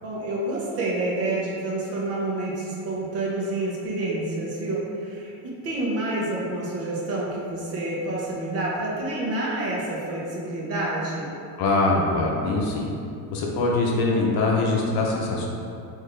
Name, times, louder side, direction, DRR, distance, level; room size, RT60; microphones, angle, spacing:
voice 1, 0.0-11.3, right 2 dB, 40° right, -4 dB, 0.7 m, -28 dB
voice 2, 11.6-12.9 13.3-15.5, left 2 dB, 65° left, -2 dB, 0.7 m, -23 dB
3.9 x 2.7 x 3.2 m, 2.5 s
cardioid pair, 160°, 39 cm